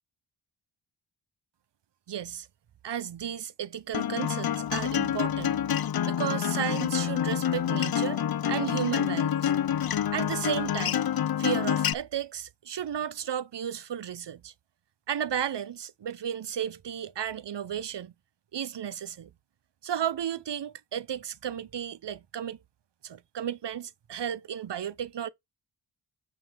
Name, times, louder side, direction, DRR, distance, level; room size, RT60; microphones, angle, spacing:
voice 1, 2.1-2.5 2.8-5.6 6.0-8.2 8.5-9.5 10.1-11.0 11.4-14.5 15.1-18.1 18.5-19.3 19.8-22.6 23.0-25.3, right 9 dB, 60° right, 0.8 m, -33 dB
Acoustic guitar, 3.9-11.9, left 10 dB, 50° left, 0.5 m, -27 dB
8.8 x 4.0 x 4.6 m
wide cardioid pair, 100°, 49 cm